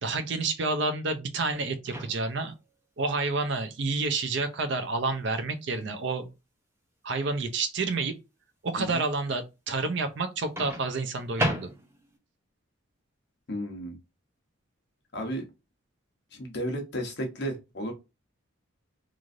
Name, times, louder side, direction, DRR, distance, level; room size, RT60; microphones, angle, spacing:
voice 1, 0.0-2.5 3.0-6.3 7.0-8.1 8.6-11.7, right 3 dB, 55° right, 0.5 m, -29 dB
Microwave oven, 1.8-2.5 4.5-4.7 10.6-12.2, equal, 10° right, 0.6 m, -33 dB
voice 2, 13.5-14.0 15.1-15.4 16.3-17.9, equal, 55° left, 0.8 m, -33 dB
3.1 x 2.5 x 2.5 m
head